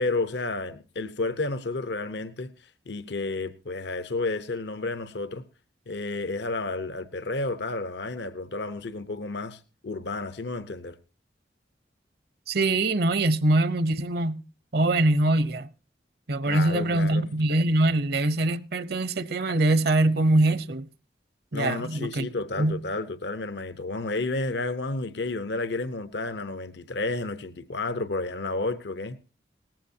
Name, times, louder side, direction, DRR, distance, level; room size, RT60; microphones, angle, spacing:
voice 1, 0.0-5.4 5.9-11.0 16.4-17.3 21.5-29.2, left 2 dB, 75° left, 0.9 m, -31 dB
voice 2, 12.5-14.4 14.7-15.7 16.3-20.9 21.5-22.3 22.6-22.8, right 2 dB, 60° right, 0.8 m, -23 dB
18.5 x 15.0 x 2.8 m
head